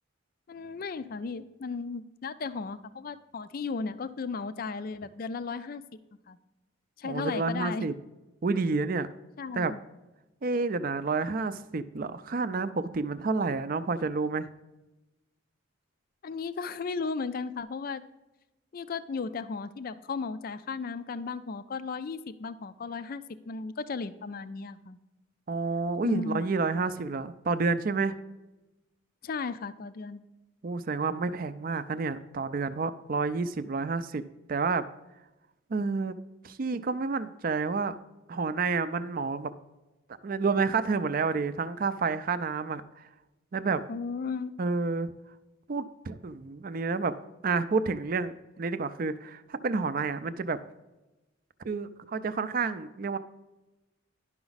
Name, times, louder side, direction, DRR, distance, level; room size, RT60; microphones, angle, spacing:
voice 1, 0.5-5.8 6.3-6.4 7.0-7.9 9.4-9.8 16.2-18.0 18.7-25.0 26.0-26.4 29.2-30.2 43.9-44.6, left 4 dB, 45° left, 14 dB, 0.4 m, -35 dB
voice 2, 7.0-7.9 8.4-9.1 9.5-9.7 10.4-14.5 25.5-28.2 30.6-34.2 34.5-34.8 35.7-36.2 36.4-38.0 38.3-39.5 40.2-43.0 43.5-43.8 44.6-45.1 45.7-47.1 47.4-50.6 51.6-53.2, right 4 dB, 45° right, 13 dB, 0.4 m, -29 dB
10.5 x 5.9 x 4.0 m, 1.0 s
head